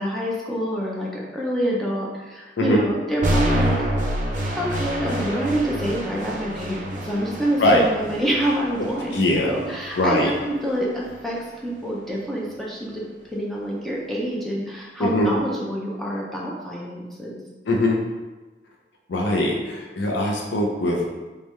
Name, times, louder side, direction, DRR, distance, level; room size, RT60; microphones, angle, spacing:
voice 1, 0.0-3.8 4.6-13.1 13.3-17.4, equal, ahead, -4 dB, 0.6 m, -27 dB
sound 1, 3.2-11.2, right 1 dB, 45° right, 0.6 m, -28 dB
voice 2, 9.1-9.5 9.9-10.3 15.0-15.3 17.7-18.0 19.1-21.1, left 1 dB, 90° left, 0 dB, 0.5 m, -21 dB
3.5 x 3.2 x 3.1 m, 1.2 s
head